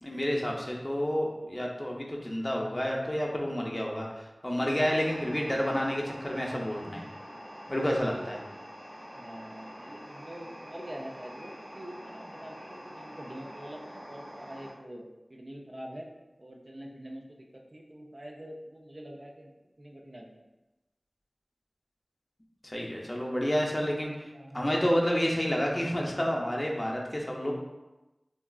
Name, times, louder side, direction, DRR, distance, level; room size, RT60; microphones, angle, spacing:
voice 1, 0.0-4.1 4.4-7.0 7.7-8.4 22.6-24.1 24.5-27.5, equal, 25° left, -1 dB, 0.5 m, -29 dB
sound 1, 4.8-14.7, equal, 70° right, 1.2 m, -46 dB
voice 2, 7.9-8.3 9.2-15.0 15.3-16.1 16.4-19.5 19.8-20.4 24.3-24.7, equal, 50° right, -1 dB, 0.4 m, -45 dB
3.7 x 2.3 x 2.3 m, 1.0 s
wide cardioid pair, 45°, 0 cm